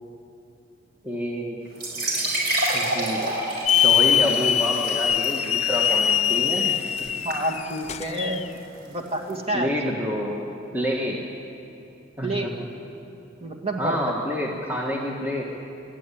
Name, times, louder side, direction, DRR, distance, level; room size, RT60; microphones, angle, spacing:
voice 1, 1.0-1.6 2.7-3.3 3.8-6.8 9.5-10.5 10.7-11.3 12.2-12.5 13.8-15.4, equal, 10° right, -2 dB, 1.5 m, -28 dB
sound 1, 1.7-9.3, right 1 dB, 50° right, 5.7 m, -30 dB
Hiss / Alarm, 3.7-8.5, left 9 dB, 35° left, 0.4 m, -22 dB
voice 2, 7.2-8.4 8.9-9.8 12.2-12.5 13.4-14.0, right 1 dB, 30° right, 2 dB, 2.3 m, -28 dB
26.0 x 13.0 x 9.9 m, 2.9 s
head